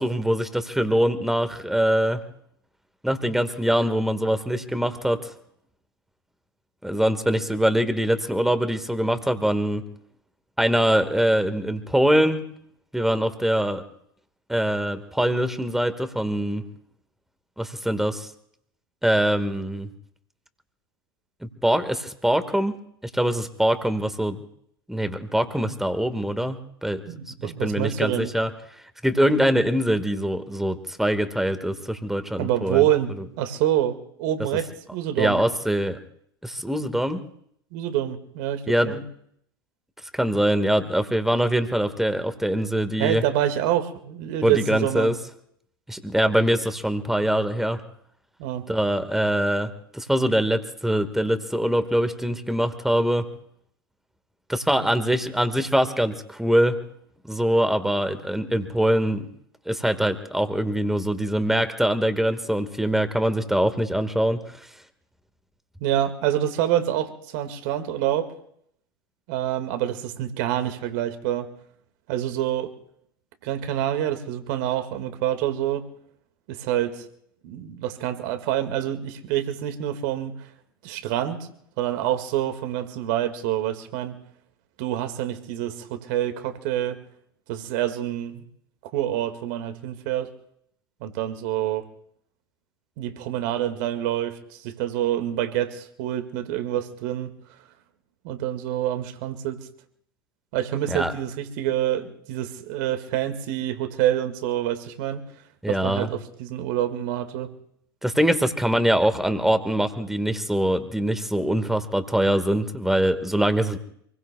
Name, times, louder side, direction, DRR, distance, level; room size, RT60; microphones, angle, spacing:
voice 1, 0.0-2.2 3.0-5.3 6.8-9.8 10.6-12.4 12.9-13.8 14.5-16.6 17.6-18.3 19.0-19.9 21.4-22.8 23.1-24.4 24.9-27.0 27.3-28.5 29.0-32.9 35.2-36.0 36.4-37.2 38.7-39.0 40.1-43.2 44.4-45.2 45.9-47.8 48.7-53.2 54.5-56.8 57.2-59.3 59.7-64.7 100.9-101.1 105.6-106.1 108.0-113.8, right 1 dB, 5° right, 9 dB, 1.7 m, -23 dB
voice 2, 27.0-28.3 32.4-33.1 33.4-35.4 37.7-39.0 43.0-45.1 48.4-48.6 65.8-68.3 69.3-71.5 72.1-72.7 73.4-75.8 76.5-77.1 77.4-80.3 80.8-81.5 81.8-84.1 84.8-87.0 87.5-88.4 88.9-90.3 91.0-91.9 93.0-97.3 98.2-99.6 100.5-105.2 105.7-107.5, right 12 dB, 50° right, 8 dB, 2.0 m, -26 dB
27.5 x 21.0 x 2.3 m, 0.69 s
figure-of-eight pair, 80°, 12 cm